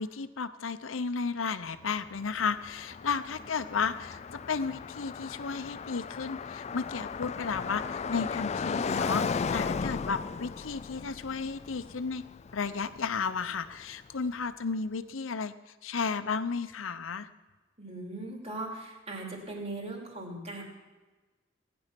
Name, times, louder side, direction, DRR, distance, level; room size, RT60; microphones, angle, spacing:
voice 1, 0.0-12.2 12.5-15.5 15.8-17.3, left 5 dB, 85° left, 13 dB, 0.7 m, -33 dB
Car passing by, 1.8-13.8, left 5 dB, 35° left, 0.3 m, -36 dB
voice 2, 17.8-20.6, right 2 dB, 35° right, 0 dB, 2.9 m, -39 dB
17.0 x 10.0 x 6.0 m, 1.2 s
head